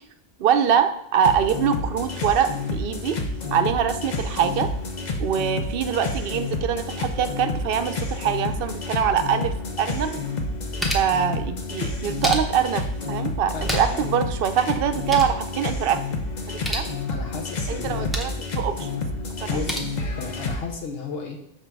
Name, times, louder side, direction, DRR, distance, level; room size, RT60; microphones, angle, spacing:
voice 1, 0.4-3.2 3.5-4.7 5.2-10.2 10.9-16.0 16.5-16.9 17.7-19.0 19.4-19.6, right 8 dB, 65° right, 9 dB, 0.7 m, -24 dB
sound 1, 1.2-20.6, left 3 dB, 50° left, 0.8 m, -29 dB
sound 2, 10.3-11.2 11.9-12.8 13.4-14.1 14.4-14.5 14.8-15.4 16.4-16.9 17.8-18.4 19.4-19.8, equal, ahead, 0.7 m, -31 dB
voice 2, 13.5-14.1 17.1-18.1 19.5-19.8 20.2-21.4, left 5 dB, 70° left, 2 dB, 1.0 m, -34 dB
6.2 x 3.9 x 4.6 m, 0.79 s
omnidirectional pair, 1.0 m